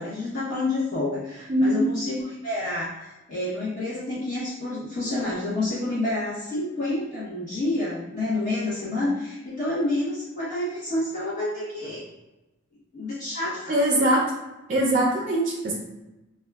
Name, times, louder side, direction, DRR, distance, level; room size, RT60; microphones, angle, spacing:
voice 1, 0.0-12.0 12.9-14.0, left 2 dB, 40° left, -9 dB, 0.9 m, -29 dB
voice 2, 1.5-1.9 13.7-14.2 14.7-15.7, right 1 dB, 35° right, -3 dB, 0.4 m, -21 dB
5.1 x 2.2 x 2.3 m, 1.0 s
head